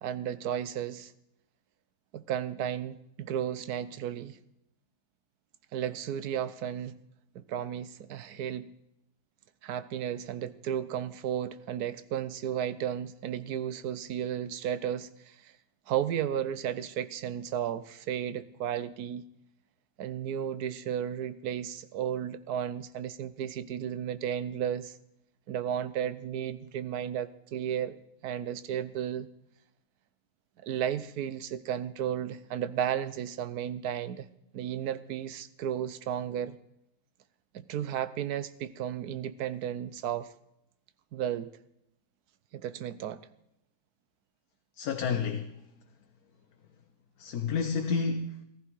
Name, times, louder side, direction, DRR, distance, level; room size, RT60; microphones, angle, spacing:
voice 1, 0.0-1.1 2.1-4.4 5.7-7.0 7.3-8.7 9.6-15.5 15.9-19.2 20.0-25.0 25.5-29.3 30.6-34.3 34.5-36.6 37.5-40.3 41.1-41.5 42.5-43.3, right 9 dB, 85° right, 1.3 m, -34 dB
voice 2, 44.8-45.7 47.2-48.4, left 5 dB, 75° left, 1.4 m, -30 dB
15.0 x 15.0 x 4.7 m
omnidirectional pair, 1.6 m